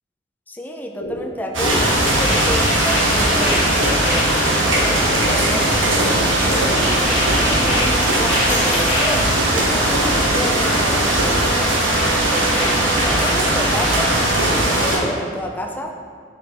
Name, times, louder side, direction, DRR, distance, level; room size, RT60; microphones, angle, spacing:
voice 1, 0.5-4.3 4.9-6.2 6.8-11.5 12.0-14.1 14.5-15.9, equal, 10° left, 2 dB, 0.5 m, -30 dB
sound 1, 1.0-1.2 1.5-6.0 6.3-9.2 9.5-9.7 9.9-10.3 10.6-10.9 11.2-13.9, left 2 dB, 85° left, 1.5 m, -27 dB
sound 2, 1.5-15.0, right 1 dB, 80° right, 1.1 m, -18 dB
sound 3, 8.5-9.9, left 2 dB, 40° left, 1.3 m, -32 dB
7.4 x 4.3 x 3.6 m, 2.1 s
head